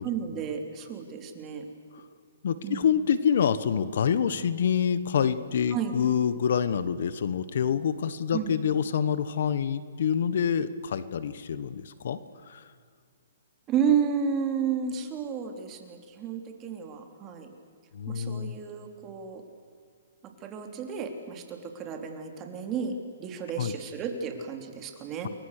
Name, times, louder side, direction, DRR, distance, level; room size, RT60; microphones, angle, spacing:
voice 1, 0.0-1.7 2.6-2.8 5.7-5.9 8.3-8.5 13.7-17.5 18.1-19.4 20.2-25.3, right 7 dB, 25° right, 5 dB, 3.3 m, -32 dB
voice 2, 2.4-12.7 17.9-18.6 23.6-23.7, left 7 dB, 65° left, 14 dB, 1.4 m, -27 dB
29.0 x 22.5 x 6.7 m, 2.1 s
hypercardioid pair, 150°, 0 cm